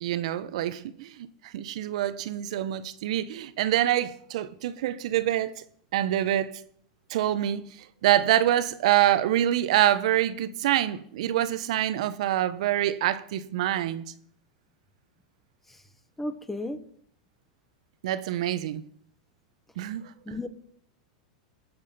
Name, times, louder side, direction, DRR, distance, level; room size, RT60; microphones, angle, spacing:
voice 1, 0.0-1.3 1.5-5.5 5.9-6.6 7.1-7.7 8.0-14.1 18.0-18.8 19.8-20.4, right 12 dB, 70° right, 0.9 m, -26 dB
voice 2, 16.2-16.8 20.3-20.5, left 1 dB, 5° left, 0.9 m, -33 dB
21.5 x 7.2 x 5.7 m
supercardioid pair, 145°, 4 cm